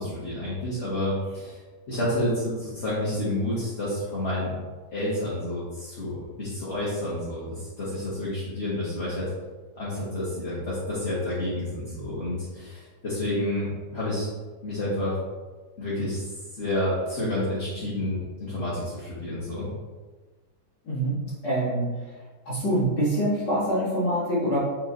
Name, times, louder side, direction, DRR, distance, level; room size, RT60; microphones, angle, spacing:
voice 1, 0.0-1.6 1.9-4.5 4.9-9.3 9.8-14.3 14.6-15.2 15.8-19.7, left 1 dB, 40° left, -9 dB, 1.8 m, -29 dB
voice 2, 20.9-21.2 21.4-22.2 22.5-24.6, right 1 dB, 70° left, -10 dB, 2.6 m, -25 dB
7.6 x 3.7 x 3.8 m, 1.3 s
omnidirectional pair, 2.0 m